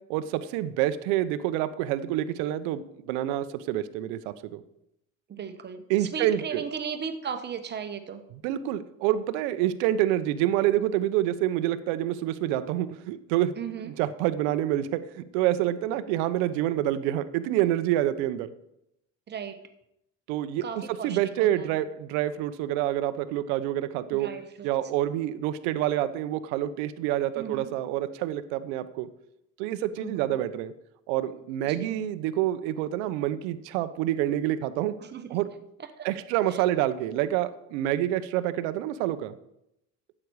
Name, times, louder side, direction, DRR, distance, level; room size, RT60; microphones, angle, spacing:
voice 1, 0.1-4.6 5.9-6.6 8.4-13.5 13.8-18.5 20.3-20.6 21.0-24.3 24.6-29.1 29.6-30.7 31.1-34.9 35.3-35.5 36.0-39.3, right 13 dB, 85° right, 12 dB, 0.9 m, -27 dB
voice 2, 5.3-8.2 13.6-13.9 19.3-19.6 20.6-21.8 24.1-24.7 27.3-27.7 30.0-30.4 31.6-32.0 35.0-35.4 35.8-36.1 36.5-36.6, right 6 dB, 30° right, 8 dB, 1.2 m, -37 dB
12.0 x 8.6 x 4.7 m, 0.82 s
cardioid pair, 125°, 35 cm